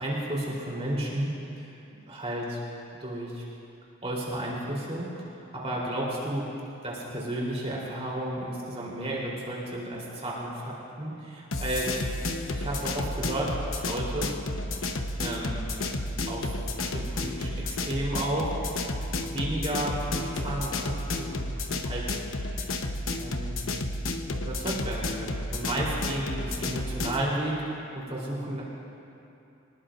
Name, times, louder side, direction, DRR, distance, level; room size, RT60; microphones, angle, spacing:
voice 1, 0.0-1.8 2.1-2.7 3.0-3.5 4.0-5.1 5.5-6.5 6.8-12.0 12.5-14.4 15.2-15.7 16.3-21.4 21.7-22.2 23.1-23.7 24.4-28.6, right 1 dB, 30° right, -5 dB, 3.7 m, -33 dB
sound 1, 11.5-27.2, left 2 dB, 85° left, 1.1 m, -32 dB
26.5 x 19.0 x 2.6 m, 2.8 s
head